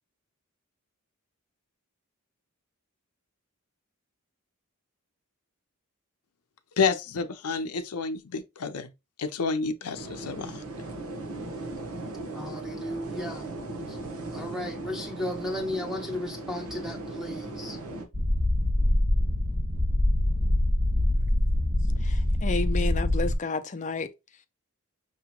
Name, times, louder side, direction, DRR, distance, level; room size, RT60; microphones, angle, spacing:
voice 1, 6.8-8.9 9.2-10.6, left 5 dB, 80° left, 0.6 m, -29 dB
sound 1, 9.9-18.0, right 2 dB, 75° right, 1.1 m, -38 dB
voice 2, 12.3-13.4 14.3-17.8, left 1 dB, ahead, 1.1 m, -34 dB
sound 2, 18.1-23.3, left 1 dB, 60° right, 1.9 m, -24 dB
voice 3, 22.0-24.1, left 3 dB, 35° left, 0.5 m, -31 dB
6.0 x 2.9 x 2.3 m
head